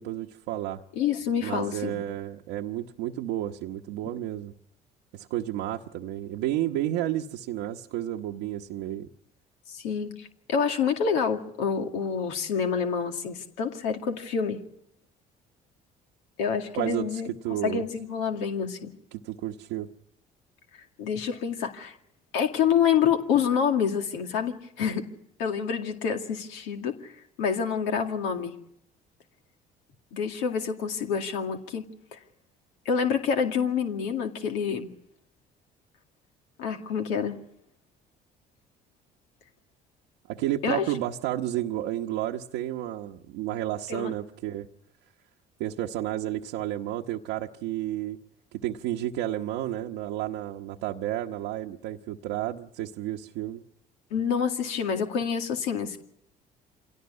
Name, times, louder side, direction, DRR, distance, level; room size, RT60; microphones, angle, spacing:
voice 1, 0.0-0.8 1.4-4.5 5.1-9.1 16.7-17.8 19.1-19.9 40.3-44.7 45.6-48.2 48.5-53.6, right 13 dB, 90° right, 0 dB, 1.0 m, -31 dB
voice 2, 1.0-2.0 9.7-14.6 16.4-17.3 17.6-18.9 21.0-22.0 22.3-25.0 25.4-27.1 27.4-28.5 30.1-32.2 32.9-34.9 36.6-37.4 40.6-40.9 43.9-44.1 54.1-56.0, left 7 dB, 90° left, 4 dB, 2.3 m, -27 dB
26.0 x 18.0 x 9.6 m, 0.75 s
supercardioid pair, 80°, 18 cm